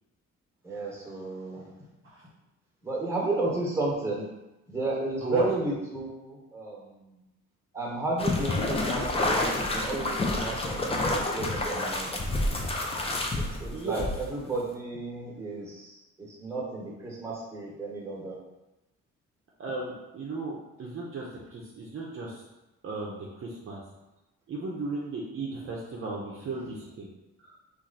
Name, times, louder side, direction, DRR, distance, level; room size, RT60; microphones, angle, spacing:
voice 1, 0.6-1.7 2.8-4.3 4.7-7.2 7.7-12.2 13.4-18.4, right 2 dB, 10° right, -4 dB, 1.1 m, -33 dB
sound 1, 8.2-14.5, left 2 dB, 20° left, 0.5 m, -29 dB
voice 2, 13.7-14.1 19.6-22.4 22.8-23.8 24.5-27.1 27.4-27.6, right 3 dB, 45° right, -3 dB, 0.6 m, -35 dB
3.0 x 2.5 x 3.9 m, 0.99 s
cardioid pair, 90°, 30 cm